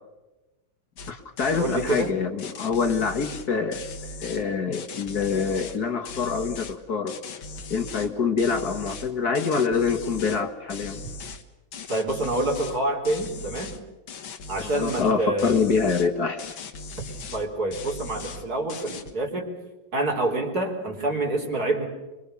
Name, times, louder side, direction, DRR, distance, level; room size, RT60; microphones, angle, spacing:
sound 1, 1.0-1.1 1.4-2.1 2.4-4.4 4.7-5.8 6.0-6.8 7.1-8.1 8.4-10.4 10.7-11.4 11.7-12.8 13.0-13.8 14.1-15.1 15.4-16.1 16.4-17.5 17.7-18.4 18.7-19.1, left 3 dB, 90° left, 2.3 m, -38 dB
voice 1, 1.1-7.2 7.7-11.0 14.7-16.5, left 5 dB, 55° left, 5 dB, 2.0 m, -25 dB
voice 2, 1.6-2.1 11.9-13.7 14.5-15.6 17.3-19.5 19.9-21.9, right 2 dB, 50° right, 1 dB, 4.4 m, -27 dB
26.0 x 23.5 x 7.0 m, 1.1 s
omnidirectional pair, 2.1 m